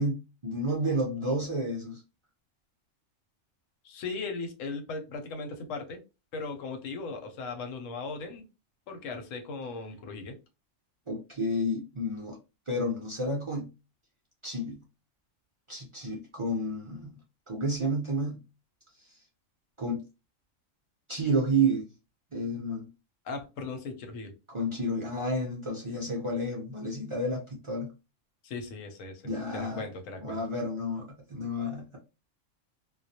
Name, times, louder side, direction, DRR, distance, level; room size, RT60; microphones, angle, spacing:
voice 1, 0.0-2.0 11.1-12.4 12.7-13.7 14.4-14.8 15.7-17.2 17.5-18.4 19.8-20.0 21.1-21.8 22.3-22.9 24.5-27.9 29.2-29.8 30.2-32.0, right 1 dB, 50° right, -2 dB, 0.3 m, -30 dB
voice 2, 3.8-6.0 6.3-8.4 8.9-10.3 23.2-24.3 28.4-30.4, left 4 dB, 85° left, 6 dB, 1.0 m, -38 dB
2.3 x 2.0 x 2.6 m, 0.28 s
omnidirectional pair, 1.3 m